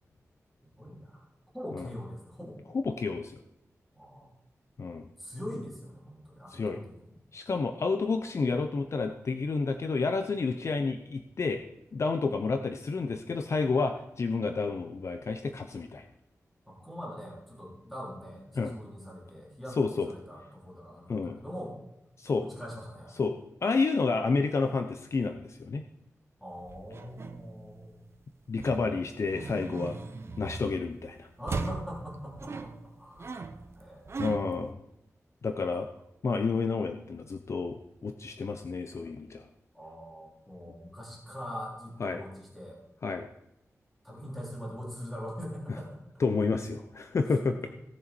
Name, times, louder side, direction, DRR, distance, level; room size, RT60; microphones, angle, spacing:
voice 1, 0.8-1.2 1.5-2.6 3.9-4.3 5.2-7.1 16.7-21.8 22.4-23.2 26.4-28.0 31.4-32.7 33.0-34.2 39.7-42.8 44.0-46.2 47.6-47.7, equal, ahead, -5 dB, 3.6 m, -42 dB
voice 2, 2.7-3.4 4.8-5.1 6.5-6.8 7.3-11.6 11.9-16.1 18.5-18.7 19.7-20.1 21.1-21.4 22.2-22.5 23.1-25.8 28.5-30.0 30.4-31.3 34.2-34.8 35.4-35.9 36.2-39.5 42.0-42.2 43.0-43.3 46.2-47.6, left 4 dB, 55° left, 6 dB, 0.7 m, -30 dB
sound 1, 26.6-28.0 28.6-31.0 31.5-34.7, right 4 dB, 50° right, 0.8 m, -39 dB
17.0 x 6.9 x 4.5 m, 0.85 s
wide cardioid pair, 125°, 6 cm